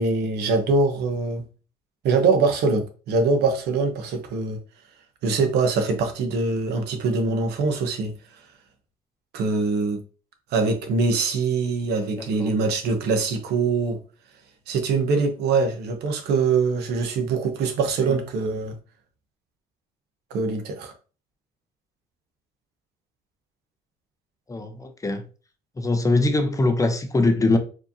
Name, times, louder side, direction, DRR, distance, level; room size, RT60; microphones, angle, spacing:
voice 1, 0.0-1.4 2.0-4.6 5.2-8.1 9.3-10.0 10.5-14.0 14.7-18.7 20.3-20.9, right 4 dB, 75° right, 0.9 m, -23 dB
voice 2, 12.2-12.6 18.0-18.2 24.5-25.2 25.8-27.6, left 2 dB, 20° left, 0.6 m, -22 dB
4.7 x 2.8 x 2.6 m
cardioid pair, 110°, 17 cm